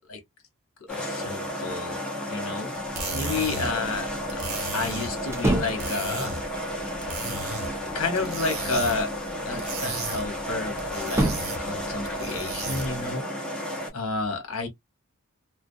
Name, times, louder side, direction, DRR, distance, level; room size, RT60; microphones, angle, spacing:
voice 1, 0.9-2.0 2.3-2.8 3.1-4.4 4.7-6.4 7.8-9.1 9.5-11.3 11.6-13.2 13.9-14.7, left 3 dB, 65° left, 1.0 m, -31 dB
sound 1, 0.9-13.9, left 1 dB, 5° left, 0.9 m, -33 dB
sound 2, 2.7-13.1, right 3 dB, 80° right, 1.0 m, -36 dB
sound 3, 5.3-5.9 7.6-8.4 11.0-11.7, right 1 dB, 15° right, 0.4 m, -27 dB
2.3 x 2.0 x 2.6 m
head